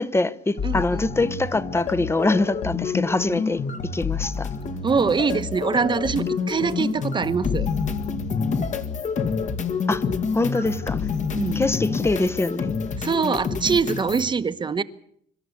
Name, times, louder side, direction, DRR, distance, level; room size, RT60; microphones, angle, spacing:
voice 1, 0.0-4.5 9.9-10.0 10.3-11.1 11.5-12.7, left 2 dB, 15° left, 1.0 m, -24 dB
sound 1, 0.6-14.3, left 5 dB, 45° left, 1.9 m, -28 dB
voice 2, 0.6-1.0 4.8-7.7 11.4-11.6 13.0-14.8, right 5 dB, 30° right, 1.1 m, -23 dB
25.5 x 13.0 x 8.5 m
cardioid pair, 110°, 17 cm